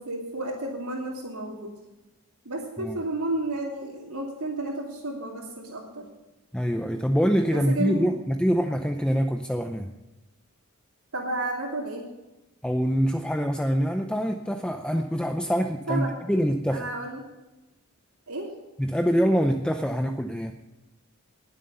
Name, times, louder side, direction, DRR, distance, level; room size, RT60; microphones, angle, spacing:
voice 1, 0.0-1.7 2.4-6.0 7.5-8.1 11.1-12.1 15.9-16.2 16.7-17.2 18.3-18.5, right 2 dB, 85° right, -6 dB, 2.9 m, -32 dB
voice 2, 6.5-9.9 12.6-16.9 18.8-20.5, equal, 5° left, 5 dB, 0.6 m, -25 dB
20.0 x 7.8 x 5.6 m, 1.1 s
head